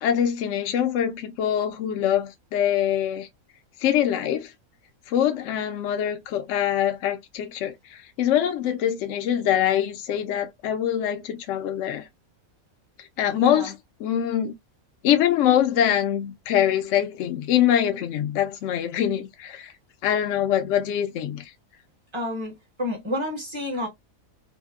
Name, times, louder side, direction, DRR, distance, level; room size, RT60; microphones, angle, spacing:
voice 1, 0.0-3.3 3.8-4.5 5.1-12.1 13.0-13.7 14.0-14.5 15.0-19.7 20.0-21.5, left 10 dB, 65° left, 0.8 m, -24 dB
voice 2, 13.2-13.7 22.1-23.9, left 1 dB, 25° right, 0.8 m, -30 dB
2.8 x 2.1 x 2.2 m
omnidirectional pair, 1.5 m